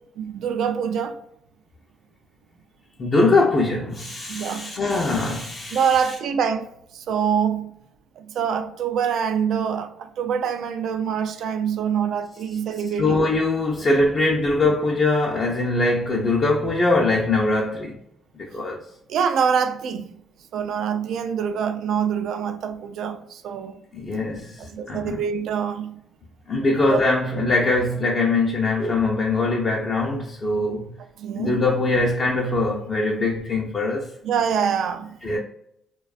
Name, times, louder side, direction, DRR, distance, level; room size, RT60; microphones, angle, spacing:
voice 1, 0.2-1.2 4.3-4.7 5.7-6.7 6.9-7.7 8.2-13.2 19.1-20.2 20.5-23.7 24.6-26.0 26.8-27.0 31.2-31.6 34.2-35.2, right 7 dB, 75° right, 0.3 m, -25 dB
voice 2, 3.0-6.1 13.0-18.0 18.4-18.8 23.9-25.2 26.5-30.9 31.3-34.1 35.2-35.4, left 2 dB, 40° left, 0.5 m, -22 dB
2.5 x 2.2 x 2.3 m
cardioid pair, 90°, 0 cm